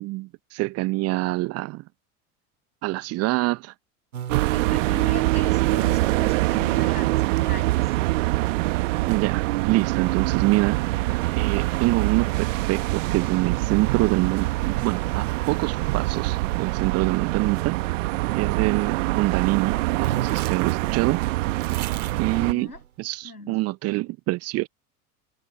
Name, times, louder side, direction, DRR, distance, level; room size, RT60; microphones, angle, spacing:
voice 1, 0.0-1.8 2.8-3.7 9.0-10.8 11.3-17.8 18.3-21.2 22.2-22.7 23.0-24.7, right 21 dB, 35° right, 0.7 m, -25 dB
sound 1, 4.1-17.3 18.0-19.4 19.7-19.8 20.0-23.1, right 10 dB, 70° right, 2.2 m, -43 dB
sound 2, 4.3-22.5, right 20 dB, 55° right, 1.3 m, -24 dB
voice 2, 4.5-7.9 22.3-22.8 23.2-23.6, left 2 dB, 90° left, 6.7 m, -39 dB
figure-of-eight pair, 80°, 45 cm